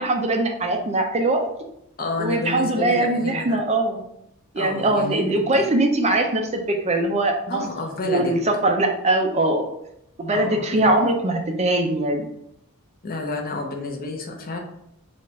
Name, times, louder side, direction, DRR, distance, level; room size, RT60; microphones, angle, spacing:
voice 1, 0.0-1.5 2.2-4.0 4.5-7.6 8.0-9.7 10.2-12.2, right 2 dB, 30° right, 4 dB, 0.5 m, -21 dB
voice 2, 2.0-3.6 4.6-5.7 7.5-8.3 10.3-11.0 13.0-14.6, left 3 dB, 40° left, 2 dB, 0.7 m, -30 dB
4.2 x 2.4 x 4.1 m, 0.77 s
head